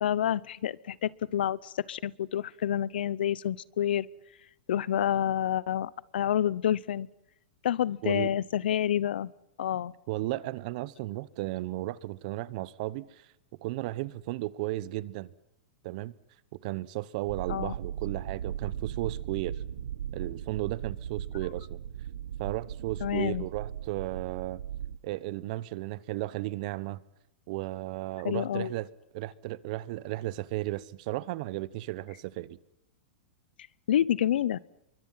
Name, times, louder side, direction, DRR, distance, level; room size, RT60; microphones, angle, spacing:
voice 1, 0.0-4.1 4.7-7.1 7.6-9.3 9.6-9.9 17.5-17.7 23.0-23.5 28.2-28.7 33.9-34.6, left 10 dB, 80° left, 0.8 m, -28 dB
voice 2, 10.1-13.3 13.6-15.3 15.8-16.1 16.6-19.6 20.1-21.8 22.4-24.6 25.0-27.0 27.5-28.9 29.1-32.6, right 17 dB, 50° right, 1.0 m, -34 dB
sound 1, 17.2-25.0, right 10 dB, 85° right, 1.1 m, -37 dB
26.0 x 23.5 x 5.7 m
supercardioid pair, 150°, 5 cm